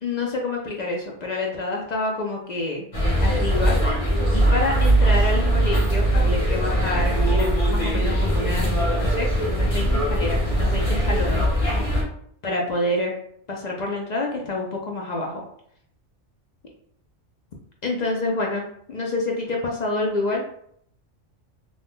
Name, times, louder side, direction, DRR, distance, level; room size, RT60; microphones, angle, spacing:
voice 1, 0.0-2.9 3.2-11.4 12.4-13.1 13.5-15.4 17.8-20.4, left 2 dB, 60° left, -1 dB, 0.4 m, -28 dB
sound 1, 2.9-12.0, right 1 dB, 30° left, 0.8 m, -21 dB
2.6 x 2.2 x 3.4 m, 0.67 s
omnidirectional pair, 1.3 m